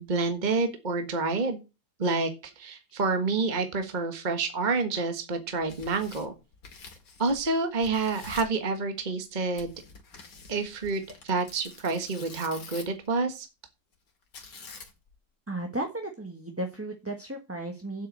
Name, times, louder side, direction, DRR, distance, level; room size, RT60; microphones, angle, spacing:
voice 1, 0.0-1.6 2.0-6.3 7.2-9.7 10.5-13.5, right 3 dB, 25° right, 6 dB, 1.5 m, -28 dB
Tearing, 5.5-7.5 7.8-8.6 9.6-13.1 14.3-15.1, left 4 dB, 75° left, 2.7 m, -47 dB
voice 2, 15.5-18.1, right 1 dB, 10° right, 4 dB, 1.2 m, -35 dB
8.2 x 6.6 x 8.0 m, 0.28 s
omnidirectional pair, 1.9 m